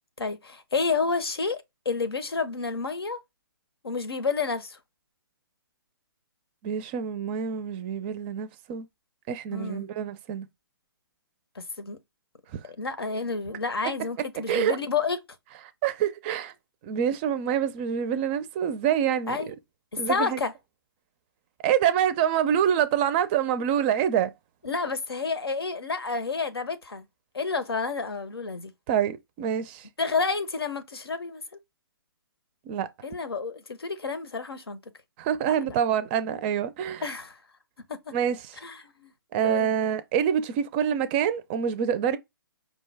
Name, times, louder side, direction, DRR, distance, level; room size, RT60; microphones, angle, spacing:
voice 1, 0.2-3.2 3.8-4.8 9.5-9.9 11.6-12.0 12.6-15.2 19.3-19.5 20.1-20.5 24.6-27.0 27.3-28.7 30.0-31.4 33.0-34.8 35.5-35.7 37.0-37.4 37.9-38.1 38.6-39.1 39.4-39.7, left 4 dB, 85° left, 0.8 m, -30 dB
voice 2, 6.6-8.9 9.3-10.5 12.5-12.6 14.2-14.8 15.8-16.5 16.8-19.5 20.0-20.4 21.6-24.3 28.9-29.9 32.7-32.9 35.2-37.0 38.1-38.5 39.3-42.2, right 9 dB, 25° right, 0.4 m, -26 dB
5.1 x 2.2 x 3.3 m
hypercardioid pair, 135°, 12 cm